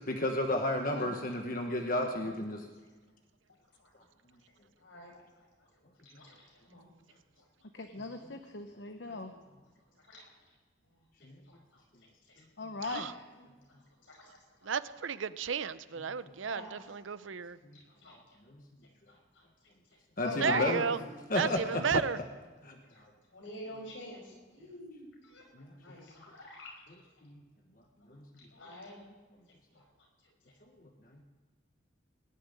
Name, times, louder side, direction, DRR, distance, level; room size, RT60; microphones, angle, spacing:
voice 1, 0.1-2.6 11.2-11.4 18.5-18.6 20.2-20.8 21.3-21.8 22.6-22.8 25.5-25.7 27.2-27.4 28.1-28.2, left 1 dB, 45° left, 3 dB, 1.2 m, -32 dB
voice 2, 0.9-1.5 2.0-2.3 3.8-3.9 4.8-5.7 6.0-6.9 9.0-9.2 9.5-9.6 10.0-10.3 11.5-11.8 12.2-12.4 13.3-13.5 14.0-14.7 15.1-15.2 16.3-16.8 17.2-17.3 17.7-18.4 19.1-19.5 20.4-21.2 22.9-23.0 23.3-27.0 28.4-29.0 29.7-29.8 30.2-30.3, equal, 80° left, 0 dB, 5.5 m, -49 dB
voice 3, 7.7-9.3 12.6-13.1 20.2-20.9, left 3 dB, 65° left, 7 dB, 0.9 m, -38 dB
voice 4, 14.6-17.6 20.4-21.0 21.3-22.2, right 6 dB, 85° right, 15 dB, 0.6 m, -33 dB
20.0 x 7.3 x 9.9 m, 1.3 s
head